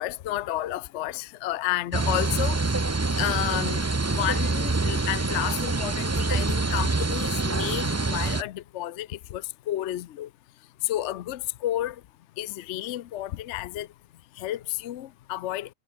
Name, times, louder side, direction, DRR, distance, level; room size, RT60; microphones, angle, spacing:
voice 1, 0.0-2.6 3.2-3.8 4.1-10.3 10.9-11.9 12.4-13.9 14.4-15.7, left 14 dB, 65° left, 0.9 m, -31 dB
sound 1, 1.9-8.4, right 3 dB, 25° right, 0.4 m, -26 dB
omnidirectional pair, 1.4 m